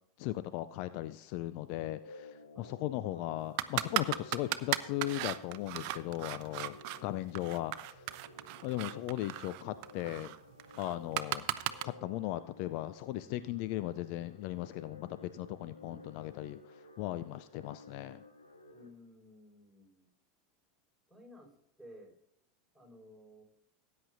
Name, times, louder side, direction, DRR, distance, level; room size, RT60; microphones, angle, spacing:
voice 1, 0.2-8.0 8.6-10.3 10.8-11.5 11.8-18.2, left 15 dB, 55° left, 14 dB, 0.4 m, -37 dB
sound 1, 1.7-18.9, left 2 dB, 85° left, 1.7 m, -55 dB
sound 2, 3.6-7.0 7.3-11.8, right 15 dB, 55° right, 0.7 m, -36 dB
voice 2, 18.7-20.1 21.1-21.5 21.8-22.1 22.7-23.4, left 1 dB, ahead, -1 dB, 5.3 m, -55 dB
18.5 x 9.6 x 2.6 m, 0.75 s
figure-of-eight pair, 85°, 0 cm